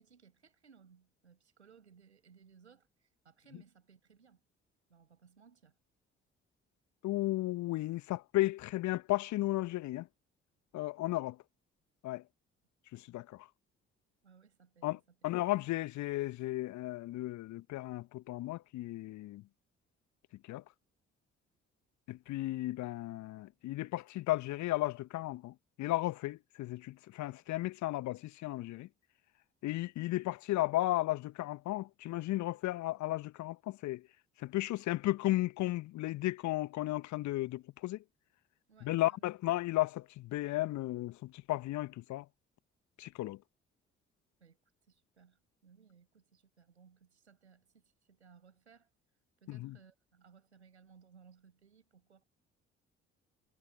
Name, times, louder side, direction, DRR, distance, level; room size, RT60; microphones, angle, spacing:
voice 1, 0.0-4.4 4.9-5.8 14.2-15.0 38.7-39.3 44.4-48.9 49.4-52.2, right 6 dB, 85° right, 5.6 m, -62 dB
voice 2, 7.0-10.1 10.7-11.4 12.0-12.2 12.9-13.5 14.8-19.4 20.5-20.6 22.1-28.9 29.6-34.0 34.4-38.0 38.8-42.3 43.0-43.4 49.5-49.8, left 17 dB, 55° left, 1.1 m, -34 dB
figure-of-eight pair, 45°, 33 cm